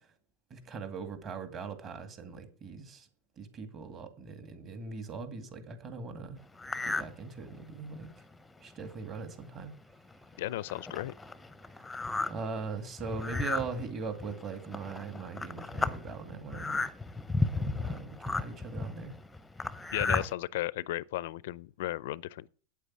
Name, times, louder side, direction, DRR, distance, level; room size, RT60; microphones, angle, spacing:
voice 1, 0.5-3.1 3.4-6.4 6.8-8.1 8.6-9.7 12.3-16.8 17.5-19.1, right 4 dB, 30° right, 2.1 m, -40 dB
sound 1, 6.6-7.1 7.6-7.7 8.3-8.4 8.7-8.9 9.6-9.7 10.1-20.3, left 3 dB, 5° left, 0.7 m, -34 dB
voice 2, 10.4-11.1 19.9-22.5, left 16 dB, 70° left, 0.4 m, -35 dB
8.8 x 8.4 x 7.4 m
supercardioid pair, 140°, 0 cm